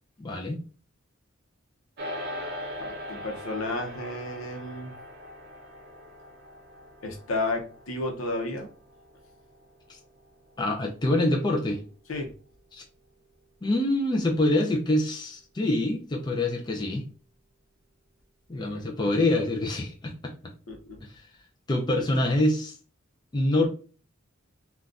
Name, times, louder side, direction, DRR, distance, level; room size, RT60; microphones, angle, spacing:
voice 1, 0.2-0.6 9.9-10.0 10.6-11.8 12.7-12.8 13.6-17.1 18.5-20.5 21.0-21.1 21.7-22.7 23.3-23.7, left 1 dB, 20° left, 0 dB, 0.4 m, -25 dB
sound 1, 2.0-11.5, left 1 dB, 50° right, 0.6 m, -41 dB
voice 2, 2.8-5.0 7.0-8.7 12.1-12.3 18.7-18.9 20.7-21.0, left 2 dB, 85° left, 2 dB, 0.7 m, -32 dB
3.6 x 2.3 x 2.4 m, 0.37 s
head